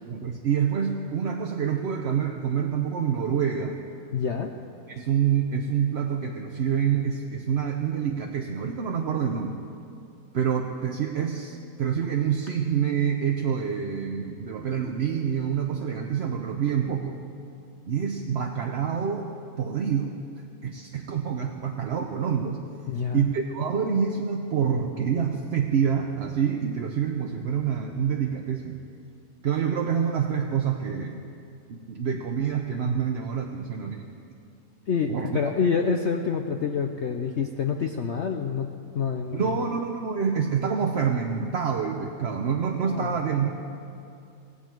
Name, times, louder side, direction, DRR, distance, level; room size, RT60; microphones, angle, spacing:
voice 1, 0.0-3.8 4.9-9.6 10.3-17.2 17.9-19.3 19.6-20.2 20.6-22.6 23.1-28.8 29.4-31.2 31.7-34.1 35.1-35.5 39.3-43.5, right 7 dB, 55° right, 2 dB, 0.8 m, -27 dB
voice 2, 4.1-4.5 22.9-23.2 34.9-38.7 38.9-39.5 42.9-43.2, left 6 dB, 60° left, 4 dB, 0.8 m, -27 dB
18.5 x 15.5 x 4.6 m, 2.6 s
omnidirectional pair, 1.8 m